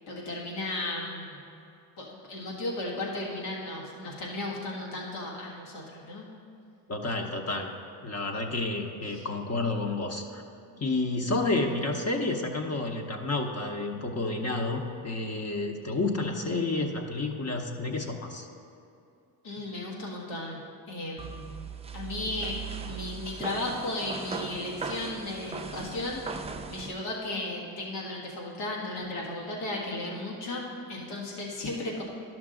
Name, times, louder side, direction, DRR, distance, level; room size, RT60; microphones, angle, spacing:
voice 1, 0.1-1.4 2.0-6.3 9.1-9.2 19.4-20.6 20.9-21.5 21.9-22.6 22.9-32.0, left 2 dB, 90° left, -3 dB, 1.7 m, -35 dB
voice 2, 6.9-7.7 8.0-10.4 10.8-18.5, left 2 dB, 35° left, 2 dB, 0.9 m, -30 dB
sound 1, 21.2-26.9, right 5 dB, 15° right, 0.4 m, -39 dB
11.0 x 6.1 x 3.8 m, 2.6 s
supercardioid pair, 75°, 46 cm